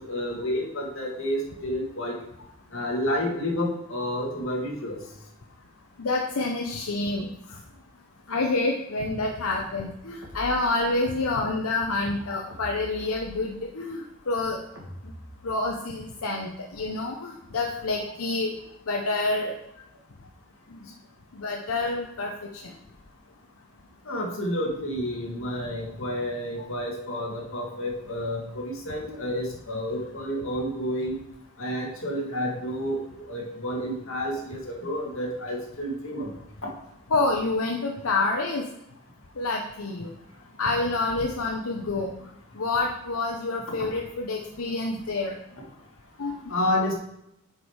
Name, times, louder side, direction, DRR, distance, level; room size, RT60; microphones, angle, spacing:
voice 1, 0.0-2.1 2.7-5.0 24.1-31.2 31.6-36.3 36.6-36.7 44.7-44.8 46.5-46.9, equal, 65° left, -2 dB, 2.0 m, -30 dB
voice 2, 6.0-7.3 8.3-14.6 15.4-18.5 18.9-19.5 21.3-22.3 37.1-38.6 39.4-40.1 40.6-42.1 42.6-45.3 46.2-46.4, left 2 dB, 85° left, 0 dB, 0.8 m, -27 dB
sound 1, 10.2-11.3 12.5-13.8 14.7-16.0, equal, 65° right, 1.8 m, -44 dB
8.3 x 5.2 x 4.7 m, 0.80 s
head